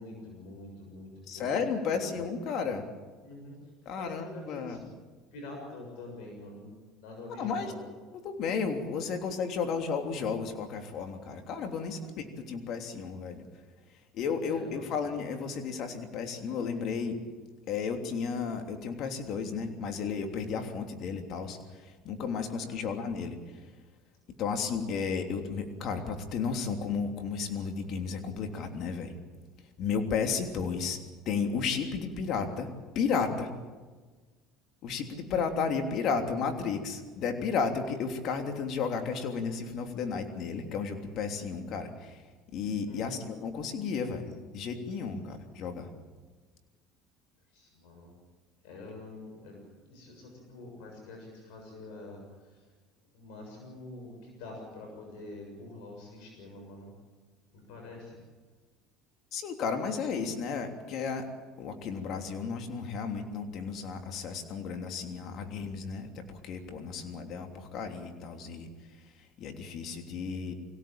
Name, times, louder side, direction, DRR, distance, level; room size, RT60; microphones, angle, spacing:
voice 1, 0.0-2.1 3.2-3.6 4.0-4.8 5.3-6.7 7.0-7.8 12.0-12.3 14.4-14.9 22.5-22.9 42.9-43.1 47.5-48.1 48.6-49.6 49.9-52.7 53.1-56.9 57.5-58.2 66.9-67.0, left 2 dB, 75° left, 1 dB, 7.1 m, -46 dB
voice 2, 1.3-2.9 3.8-4.8 7.4-7.7 8.2-13.4 14.1-17.2 17.7-23.4 24.4-29.1 29.8-31.0 31.2-32.7 32.9-33.5 34.8-42.2 42.5-45.9 59.3-61.3 61.6-68.7 69.4-70.5, left 5 dB, 60° left, 5 dB, 3.2 m, -33 dB
24.5 x 17.0 x 8.9 m, 1.4 s
supercardioid pair, 100°, 0 cm